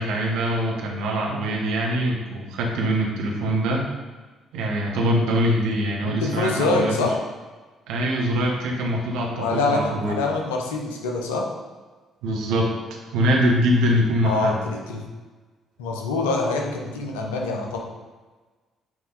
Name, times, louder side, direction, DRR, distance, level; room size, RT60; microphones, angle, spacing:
voice 1, 0.0-3.9 4.5-6.9 7.9-10.3 12.2-12.7 13.1-14.6, equal, 60° right, -1 dB, 1.2 m, -23 dB
voice 2, 6.0-7.1 9.3-11.5 14.2-15.0 15.8-17.8, left 3 dB, 70° left, 1 dB, 0.9 m, -25 dB
8.7 x 3.7 x 4.1 m, 1.3 s
figure-of-eight pair, 45°, 0 cm